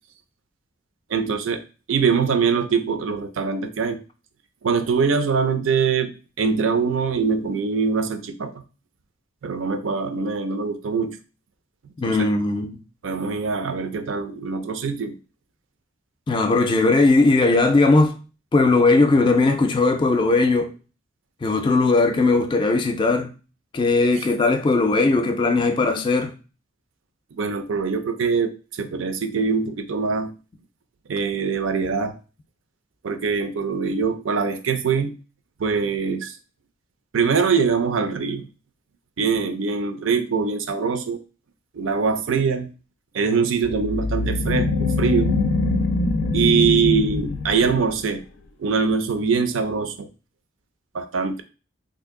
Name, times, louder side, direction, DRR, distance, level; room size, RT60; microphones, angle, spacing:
voice 1, 1.1-1.6 1.9-4.0 4.6-8.5 9.4-11.2 12.0-12.3 13.0-15.1 27.3-30.3 31.1-32.1 33.0-35.1 35.6-36.4 37.1-38.5 39.2-41.2 41.7-42.7 43.1-45.4 46.3-48.2 48.6-50.1 50.9-51.4, right 5 dB, 80° right, 0.4 m, -23 dB
voice 2, 12.0-12.8 16.3-18.1 18.5-20.7 21.4-23.3 23.7-26.3, left 3 dB, 25° left, 0.3 m, -18 dB
sound 1, 43.6-48.0, left 3 dB, 85° left, 0.5 m, -23 dB
2.7 x 2.5 x 3.5 m
head